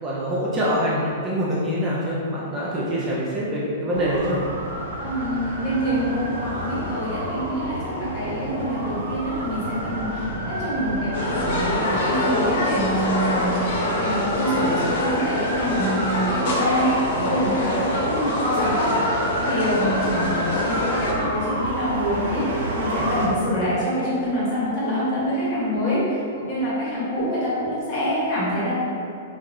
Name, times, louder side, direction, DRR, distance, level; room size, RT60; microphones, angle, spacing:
voice 1, 0.0-4.4 20.1-20.4, equal, 15° right, -7 dB, 0.3 m, -25 dB
sound 1, 3.9-23.3, right 1 dB, 70° right, 0.6 m, -30 dB
voice 2, 5.0-13.6 13.9-28.7, equal, 35° left, -8 dB, 0.9 m, -26 dB
atmo centraal station, 11.1-21.1, left 1 dB, 55° left, 0.5 m, -25 dB
3.2 x 2.2 x 2.5 m, 2.5 s
hypercardioid pair, 160°, 0 cm